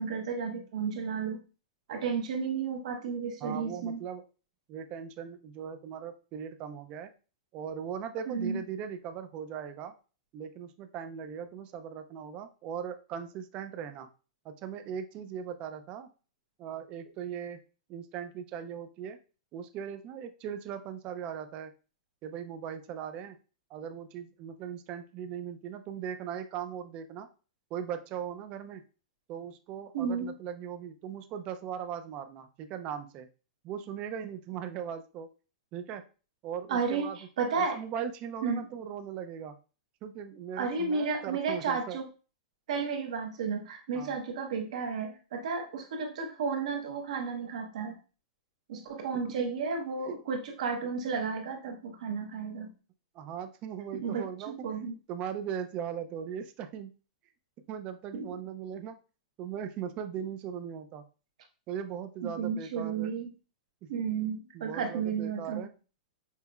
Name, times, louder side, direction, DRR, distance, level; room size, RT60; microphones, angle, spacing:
voice 1, 0.0-1.4 1.9-4.0 8.3-8.6 29.9-30.3 36.7-37.8 38.4-38.7 40.6-42.1 42.7-48.0 48.7-52.7 53.9-54.9 58.1-58.3 62.2-63.3 63.9-65.6, right 5 dB, 70° right, 4 dB, 0.8 m, -33 dB
voice 2, 3.4-4.2 4.7-7.1 7.5-9.9 10.3-14.1 14.4-16.1 16.6-17.6 17.9-19.2 19.5-21.7 22.2-23.4 23.7-27.3 27.7-28.8 29.3-33.3 33.6-35.3 35.7-36.0 36.4-37.2 37.6-39.6 40.0-42.0 43.9-44.2 49.3-49.5 50.0-50.2 53.1-54.5 55.1-56.9 57.7-59.0 59.4-61.0 61.7-63.1 63.8-64.0 64.5-65.7, right 8 dB, 30° right, 9 dB, 0.4 m, -39 dB
5.4 x 2.1 x 2.3 m, 0.34 s
supercardioid pair, 155°, 4 cm